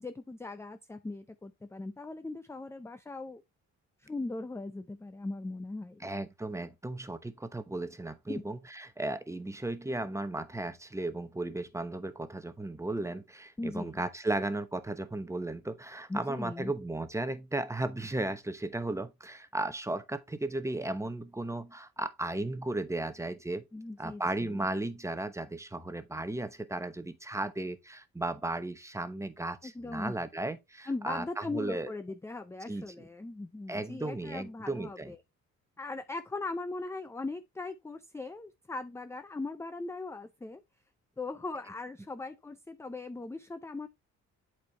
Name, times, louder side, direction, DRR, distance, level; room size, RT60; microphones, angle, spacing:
voice 1, 0.0-3.4 4.0-6.0 8.3-8.4 13.6-14.0 16.1-16.7 23.7-24.7 29.6-30.1 30.9-35.2 35.8-40.6 41.2-43.9, left 3 dB, 10° left, 0.5 m, -39 dB
voice 2, 6.0-23.6 24.0-31.9 32.7-33.1 33.7-35.1, right 2 dB, 10° right, 0.9 m, -35 dB
8.2 x 4.6 x 3.3 m
cardioid pair, 90°, 30 cm